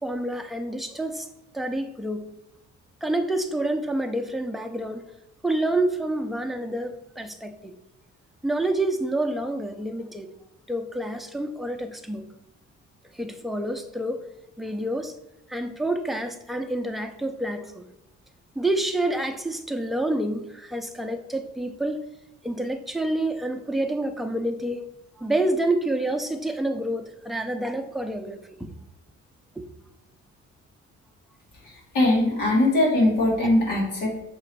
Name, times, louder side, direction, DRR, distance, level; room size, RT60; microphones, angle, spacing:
voice 1, 0.0-1.3 1.5-2.3 3.0-5.1 5.4-7.7 8.4-10.3 10.7-12.2 13.1-14.2 14.6-15.2 15.5-17.9 18.6-22.0 22.4-24.8 25.2-28.7 29.6-29.7, right 1 dB, ahead, 0.6 m, -28 dB
voice 2, 31.6-34.2, left 1 dB, 85° left, 2.3 m, -21 dB
6.8 x 3.1 x 4.6 m
cardioid pair, 90°, 30 cm